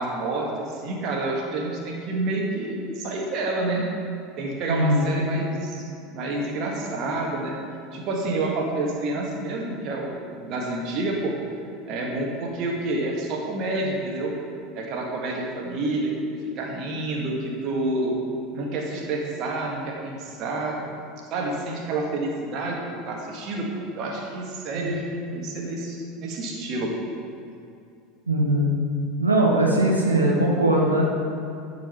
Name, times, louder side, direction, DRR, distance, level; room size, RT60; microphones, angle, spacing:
voice 1, 0.0-3.9 4.4-5.9 6.1-7.5 7.9-11.4 11.9-14.4 14.7-16.1 16.6-18.2 18.5-20.9 21.3-27.1, right 2 dB, 45° right, -1 dB, 1.7 m, -28 dB
voice 2, 4.7-5.0 24.7-24.9 28.3-28.7 29.2-31.0, right 1 dB, 80° right, -2 dB, 1.0 m, -20 dB
10.5 x 4.9 x 5.8 m, 2.5 s
figure-of-eight pair, 75°, 0 cm